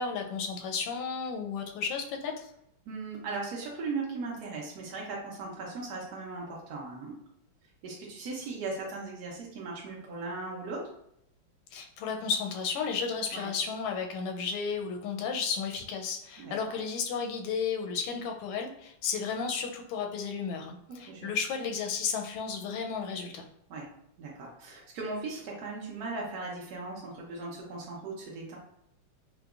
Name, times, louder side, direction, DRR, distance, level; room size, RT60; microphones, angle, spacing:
voice 1, 0.0-2.5 11.7-23.4, left 5 dB, 85° left, 4 dB, 1.5 m, -33 dB
voice 2, 2.9-7.1 7.8-10.8 13.3-13.5 16.4-16.8 20.9-21.3 23.7-23.8 24.2-28.6, right 3 dB, 75° right, -3 dB, 0.9 m, -38 dB
4.6 x 2.2 x 2.3 m, 0.76 s
omnidirectional pair, 2.4 m